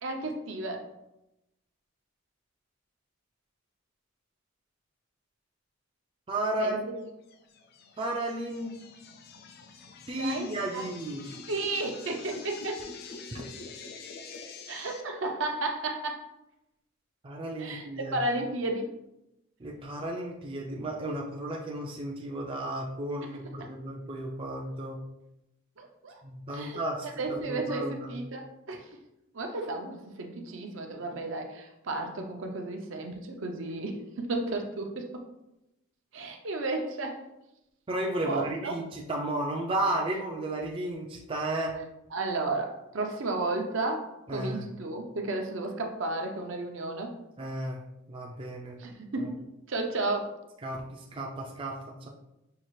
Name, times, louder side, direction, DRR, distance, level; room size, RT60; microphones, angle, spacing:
voice 1, 0.0-0.8 6.6-6.8 10.2-10.9 11.5-12.9 14.7-16.2 17.6-18.9 23.6-23.7 25.8-26.2 26.5-28.8 29.3-35.2 36.1-37.2 38.3-38.7 42.1-47.1 48.8-49.3 49.7-50.3, right 2 dB, 65° right, 3 dB, 0.6 m, -33 dB
voice 2, 6.3-7.0 8.0-8.8 10.1-11.3 13.3-13.4 17.2-18.1 19.6-25.0 26.2-27.1 27.4-28.2 37.9-41.7 44.3-44.7 47.4-47.8 48.1-48.8 50.6-52.1, right 1 dB, 25° right, -1 dB, 0.4 m, -33 dB
sound 1, 7.3-15.0, left 4 dB, 50° left, 0.4 m, -46 dB
5.6 x 2.4 x 3.1 m, 0.89 s
head